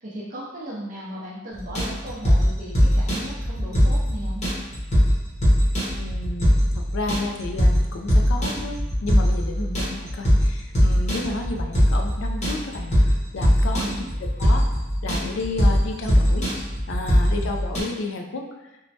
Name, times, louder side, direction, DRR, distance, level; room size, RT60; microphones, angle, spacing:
voice 1, 0.0-4.4 9.6-9.8 13.8-14.2, right 1 dB, 40° right, -6 dB, 0.5 m, -37 dB
sound 1, 1.6-17.8, equal, 30° left, 0.8 m, -21 dB
voice 2, 6.0-13.9 14.4-14.7 15.0-16.5 16.9-18.4, left 2 dB, 60° left, 3 dB, 0.3 m, -32 dB
3.1 x 2.1 x 2.7 m, 1.0 s
head